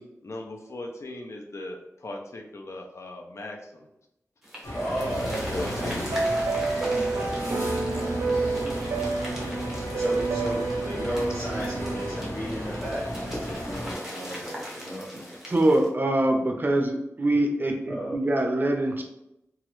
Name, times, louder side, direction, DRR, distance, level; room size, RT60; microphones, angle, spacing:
voice 1, 0.0-3.8 4.8-6.5 7.1-8.6 14.3-14.4, left 2 dB, 65° left, 1 dB, 0.5 m, -39 dB
sound 1, 4.4-15.9, equal, 5° right, 1.1 m, -41 dB
sound 2, 4.6-14.0, equal, 90° left, 1.1 m, -34 dB
voice 2, 4.7-5.9 6.9-7.3 7.9-8.4 9.9-15.3 17.9-18.2, equal, 20° left, -8 dB, 0.9 m, -34 dB
sound 3, 4.9-12.2, right 3 dB, 85° right, 0.4 m, -29 dB
voice 3, 15.5-19.0, right 1 dB, 40° right, 3 dB, 0.5 m, -24 dB
3.0 x 2.4 x 3.0 m, 0.84 s
wide cardioid pair, 80°, 5 cm